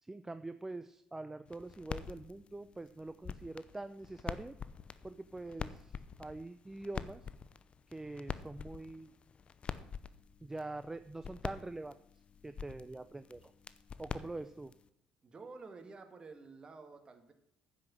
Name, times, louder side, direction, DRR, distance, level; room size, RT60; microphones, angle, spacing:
voice 1, 0.0-4.6 5.0-7.2 7.9-9.1 10.4-12.0 12.4-13.5 14.0-14.7, right 2 dB, 15° right, 11 dB, 0.5 m, -44 dB
sound 1, 1.5-14.9, left 6 dB, 40° left, 0.7 m, -46 dB
voice 2, 15.2-17.3, right 4 dB, 35° right, 7 dB, 1.9 m, -51 dB
9.7 x 6.1 x 7.4 m, 0.80 s
supercardioid pair, 70°, 3 cm